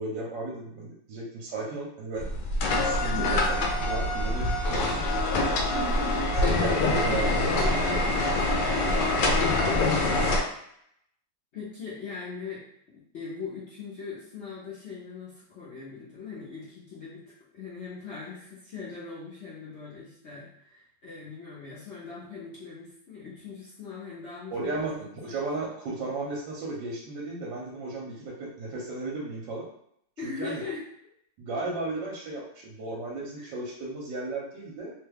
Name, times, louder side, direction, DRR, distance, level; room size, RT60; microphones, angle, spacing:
voice 1, 0.0-2.3 2.6-5.0 6.2-8.6 9.5-10.0 24.5-29.7 30.2-30.6 31.4-34.9, right 2 dB, 75° right, -3 dB, 1.3 m, -35 dB
sound 1, 2.2-10.4, left 2 dB, 75° left, 1.1 m, -25 dB
voice 2, 3.1-3.5 5.7-6.2 11.5-12.6 12.9-17.2 17.5-25.7 30.2-30.9 33.4-33.5, left 5 dB, 55° left, -8 dB, 0.7 m, -40 dB
3.1 x 2.2 x 3.3 m, 0.71 s
omnidirectional pair, 2.1 m